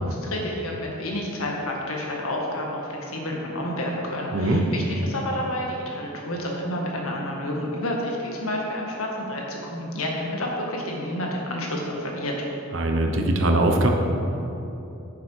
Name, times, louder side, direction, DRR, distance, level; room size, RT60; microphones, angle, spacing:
voice 1, 0.0-12.3, left 1 dB, 85° left, -1 dB, 1.7 m, -30 dB
voice 2, 4.3-4.6 12.7-13.9, right 1 dB, 65° right, 3 dB, 1.0 m, -21 dB
9.6 x 7.1 x 4.6 m, 2.9 s
head